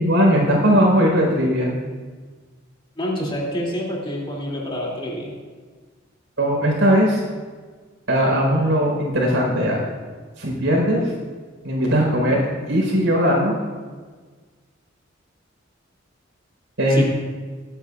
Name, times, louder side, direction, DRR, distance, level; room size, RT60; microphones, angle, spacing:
voice 1, 0.0-1.7 6.4-7.2 8.1-9.8 10.4-11.1 11.6-13.5 16.8-17.1, equal, 75° right, -1 dB, 4.4 m, -19 dB
voice 2, 3.0-5.3 16.9-17.0, equal, 25° left, -4 dB, 2.6 m, -27 dB
24.5 x 9.6 x 2.4 m, 1.5 s
head